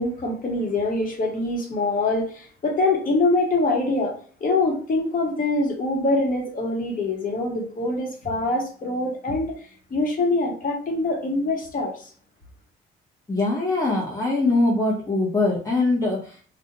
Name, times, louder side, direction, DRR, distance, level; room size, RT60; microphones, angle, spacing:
voice 1, 0.0-9.6 9.9-12.0, left 2 dB, 45° left, 0 dB, 1.0 m, -24 dB
voice 2, 13.3-16.3, left 2 dB, 15° left, -6 dB, 0.8 m, -22 dB
2.4 x 2.2 x 2.9 m, 0.43 s
cardioid pair, 90°, 20 cm